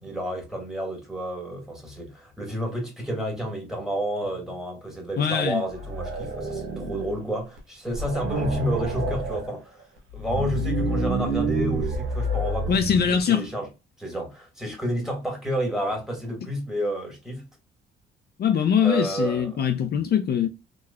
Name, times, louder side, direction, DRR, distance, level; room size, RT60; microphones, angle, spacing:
voice 1, 0.0-9.8 10.1-13.7 14.0-17.4 18.8-19.7, right 1 dB, ahead, 1.7 m, -30 dB
voice 2, 5.2-5.6 12.7-13.4 18.4-20.5, left 8 dB, 55° left, 0.5 m, -22 dB
sound 1, 5.7-7.2 7.6-7.7 7.9-9.5 10.1-13.2, right 1 dB, 90° right, 1.0 m, -28 dB
3.6 x 3.0 x 2.2 m
cardioid pair, 90°, 20 cm